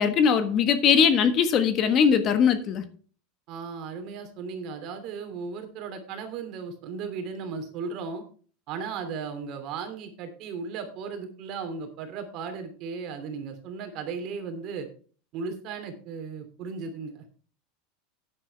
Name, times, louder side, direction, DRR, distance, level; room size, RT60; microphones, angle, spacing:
voice 1, 0.0-2.8, left 7 dB, 35° left, 9 dB, 1.4 m, -21 dB
voice 2, 3.5-8.2 8.7-14.9 15.3-17.2, right 5 dB, 45° right, 7 dB, 2.9 m, -36 dB
12.0 x 9.8 x 3.4 m, 0.39 s
supercardioid pair, 155°, 0 cm